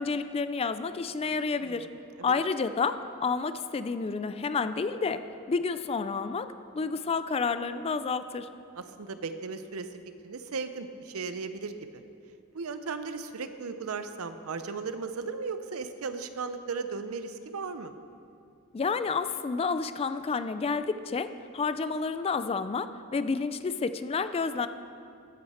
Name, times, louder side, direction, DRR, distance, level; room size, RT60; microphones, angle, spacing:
voice 1, 0.0-1.9 2.2-5.2 5.5-8.5 18.7-24.7, left 4 dB, 25° left, 11 dB, 0.3 m, -30 dB
voice 2, 8.7-12.0 12.5-17.9, right 4 dB, 80° right, 10 dB, 0.6 m, -36 dB
13.0 x 8.0 x 4.3 m, 2.5 s
head